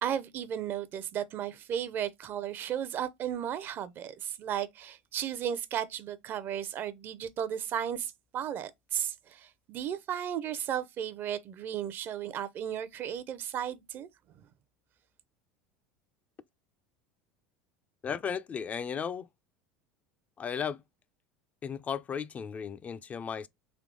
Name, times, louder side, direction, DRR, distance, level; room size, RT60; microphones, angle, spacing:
voice 1, 0.0-14.1, right 9 dB, 45° right, 0.5 m, -34 dB
voice 2, 18.0-19.3 20.4-20.8 21.6-23.5, left 7 dB, 30° left, 0.3 m, -35 dB
3.5 x 2.8 x 3.7 m
hypercardioid pair, 85°, 5 cm